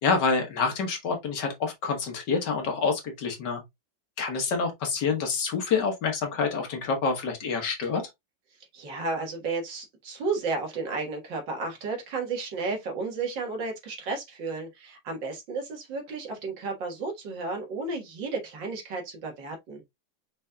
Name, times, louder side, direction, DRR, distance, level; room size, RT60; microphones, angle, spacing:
voice 1, 0.0-3.6 4.2-8.0, left 4 dB, 60° left, 1.7 m, -27 dB
voice 2, 8.7-19.8, right 3 dB, 70° right, 2.2 m, -33 dB
5.3 x 4.1 x 2.3 m
omnidirectional pair, 2.1 m